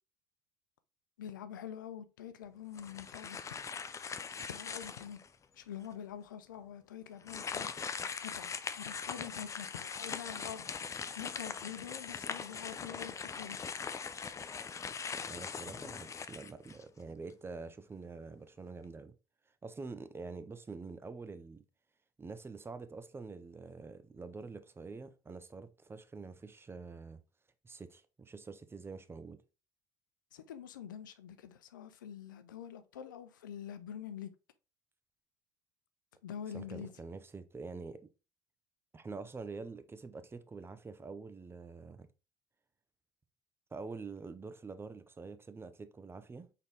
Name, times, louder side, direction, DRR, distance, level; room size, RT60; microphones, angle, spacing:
voice 1, 1.2-3.6 4.5-5.2 5.5-13.6 30.3-34.3 36.2-36.9, left 9 dB, 90° left, 0.5 m, -46 dB
sound 1, 2.7-5.3 5.8-5.9 7.2-17.0, left 6 dB, 30° left, 0.4 m, -41 dB
voice 2, 15.2-19.1 19.6-21.6 22.2-27.2 27.6-29.4 36.5-38.0 38.9-42.1 43.7-46.5, right 4 dB, 25° right, 0.6 m, -46 dB
4.0 x 3.7 x 3.2 m
hypercardioid pair, 65°, 10 cm